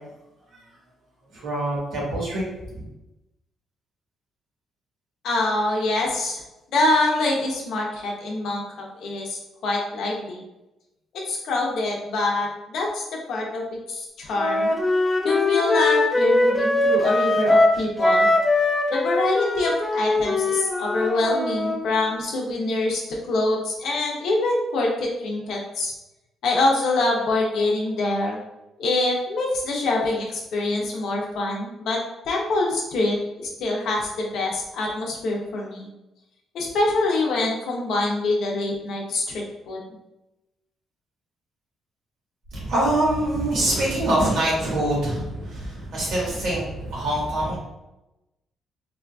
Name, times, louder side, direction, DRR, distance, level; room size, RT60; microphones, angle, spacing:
voice 1, 1.3-2.4 2.7-2.8 42.5-47.6, right 1 dB, 80° right, -5 dB, 1.4 m, -24 dB
voice 2, 5.2-6.4 6.7-8.6 9.0-10.4 11.3-14.7 15.2-18.3 18.9-23.0 23.3-25.9 26.4-28.4 28.8-32.0 32.3-35.9 36.5-39.8, left 2 dB, 75° left, -1 dB, 0.8 m, -25 dB
Wind instrument woodwind instrument, 14.3-21.8, left 2 dB, 20° left, 0.5 m, -21 dB
3.6 x 2.5 x 2.3 m, 0.96 s
cardioid pair, 90°, 0 cm